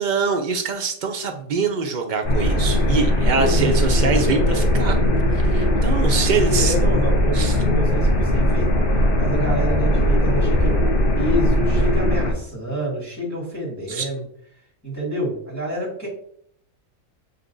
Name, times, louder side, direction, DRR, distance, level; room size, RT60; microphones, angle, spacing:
voice 1, 0.0-5.0 5.3-6.7 7.3-7.5 13.9-14.1, right 5 dB, 60° right, 4 dB, 0.5 m, -24 dB
sound 1, 2.2-12.3, equal, 50° left, 0.9 m, -19 dB
voice 2, 3.4-3.9 6.1-6.2 6.5-10.8 11.2-14.2 14.8-16.1, right 1 dB, 10° left, -8 dB, 1.9 m, -28 dB
6.7 x 2.9 x 2.6 m, 0.64 s
omnidirectional pair, 1.4 m